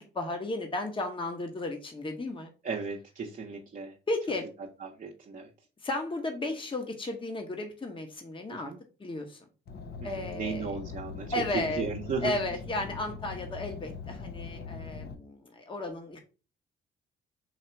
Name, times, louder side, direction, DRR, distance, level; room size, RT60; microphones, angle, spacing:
voice 1, 0.0-2.5 4.1-4.5 5.8-8.7 9.0-9.4 10.0-10.7 11.3-11.9 12.2-16.2, left 2 dB, 25° left, 4 dB, 1.1 m, -34 dB
voice 2, 2.6-4.0 4.8-5.5 8.5-8.8 10.0-12.4, right 4 dB, 40° right, -1 dB, 0.8 m, -35 dB
Car, 9.7-15.1, left 5 dB, 55° left, 0.7 m, -41 dB
4.1 x 2.8 x 4.4 m, 0.33 s
cardioid pair, 90°, 20 cm